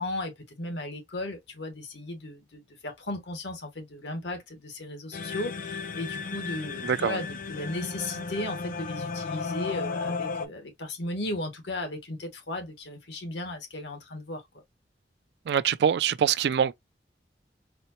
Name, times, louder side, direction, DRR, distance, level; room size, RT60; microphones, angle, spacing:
voice 1, 0.0-14.4, left 2 dB, 85° left, 1.2 m, -36 dB
sound 1, 5.1-10.5, left 4 dB, 50° left, 0.4 m, -34 dB
voice 2, 6.8-7.2 15.5-16.7, right 8 dB, 70° right, 0.3 m, -24 dB
4.1 x 2.1 x 2.8 m
head